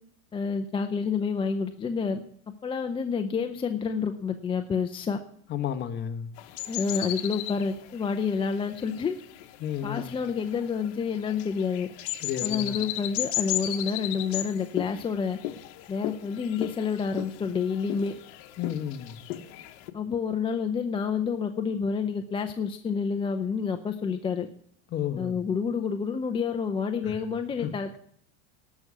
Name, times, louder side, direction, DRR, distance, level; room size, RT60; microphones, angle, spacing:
voice 1, 0.3-2.2 2.6-5.2 6.7-9.2 9.8-11.9 12.4-15.4 15.9-18.1 19.9-24.5 25.2-28.0, left 6 dB, 15° left, 0.6 m, -29 dB
voice 2, 5.5-6.3 9.6-10.2 12.2-12.9 18.6-19.2 24.9-25.4 27.0-27.1 27.6-27.7, left 9 dB, 30° left, 1.2 m, -32 dB
sound 1, 6.4-19.9, left 13 dB, 60° left, 1.2 m, -36 dB
12.0 x 6.2 x 9.4 m
supercardioid pair, 140°, 33 cm